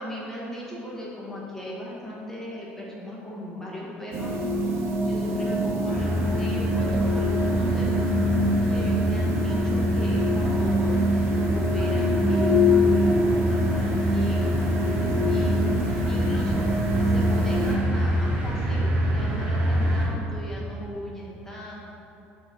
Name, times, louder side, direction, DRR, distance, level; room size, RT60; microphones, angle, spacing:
voice 1, 0.0-4.4 4.7-4.8 5.0-8.1 8.6-10.9 11.3-16.7 17.0-21.8, left 1 dB, 10° left, -5 dB, 1.3 m, -37 dB
sound 1, 4.1-17.8, left 1 dB, 65° right, 0.8 m, -25 dB
sound 2, 5.9-20.1, equal, 25° right, 1.4 m, -26 dB
5.5 x 4.4 x 4.0 m, 2.9 s
supercardioid pair, 105°, 5 cm